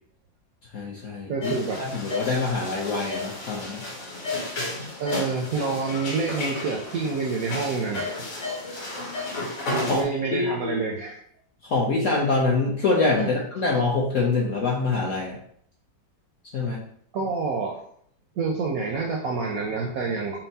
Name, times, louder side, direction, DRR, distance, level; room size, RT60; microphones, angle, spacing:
voice 1, 0.7-1.5 1.8-3.8 9.9-10.0 10.3-10.8 11.6-15.4 16.5-16.8, left 3 dB, 65° left, -3 dB, 0.8 m, -25 dB
voice 2, 1.3-1.8 5.0-8.2 9.7-11.2 13.2-13.3 17.1-17.8 18.4-20.4, right 4 dB, 75° right, 0 dB, 0.8 m, -27 dB
sound 1, 1.4-10.0, left 2 dB, 50° left, 1.1 m, -33 dB
4.4 x 2.0 x 4.0 m, 0.63 s
omnidirectional pair, 2.0 m